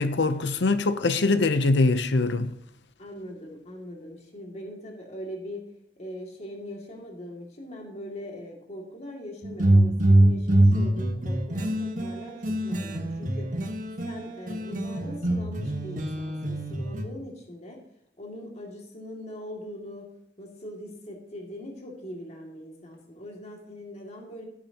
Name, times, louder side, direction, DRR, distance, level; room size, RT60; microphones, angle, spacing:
voice 1, 0.0-2.5, left 3 dB, 90° left, 0.8 m, -23 dB
voice 2, 3.0-5.6 6.0-13.5 14.0-17.8 18.2-20.1 20.4-24.4, equal, 40° left, 2.5 m, -41 dB
sound 1, 9.4-14.2 14.5-17.0, right 1 dB, 50° right, 1.5 m, -24 dB
16.5 x 9.9 x 3.0 m
head